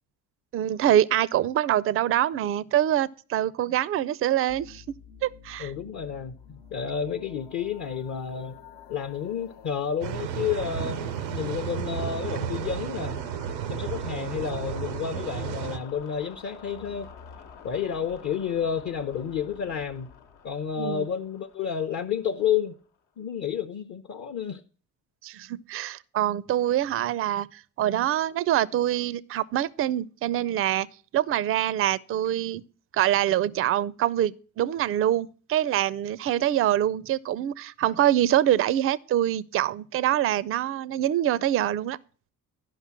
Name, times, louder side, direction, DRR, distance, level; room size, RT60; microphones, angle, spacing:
voice 1, 0.5-4.8 5.2-5.7 20.8-21.0 25.2-30.9 31.1-32.6 32.9-42.0, right 12 dB, 30° right, 0.4 m, -25 dB
sound 1, 4.5-23.0, left 7 dB, 65° left, 1.1 m, -49 dB
voice 2, 5.6-8.6 8.9-13.2 13.7-17.1 17.6-20.1 20.4-22.8 23.2-24.6, left 8 dB, 35° left, 0.7 m, -30 dB
sound 2, 10.0-15.8, right 9 dB, 85° right, 0.6 m, -33 dB
11.5 x 5.6 x 5.8 m
figure-of-eight pair, 50°, 50 cm